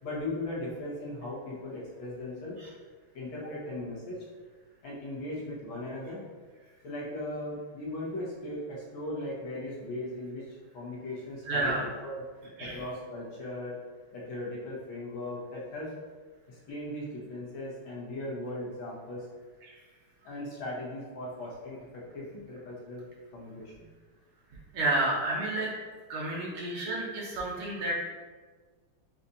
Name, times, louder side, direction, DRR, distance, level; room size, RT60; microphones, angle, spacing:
voice 1, 0.0-2.6 3.1-4.2 4.8-6.3 6.8-10.5 10.7-11.8 12.0-12.2 12.6-13.8 14.1-16.0 16.5-19.3 20.2-23.0 23.3-23.9, left 1 dB, 70° left, -6 dB, 1.9 m, -38 dB
voice 2, 11.5-11.9 12.6-12.8 19.6-19.8 24.7-25.7 26.1-28.0, right 2 dB, 90° right, -4 dB, 1.9 m, -30 dB
6.7 x 2.4 x 2.7 m, 1.5 s
omnidirectional pair, 2.3 m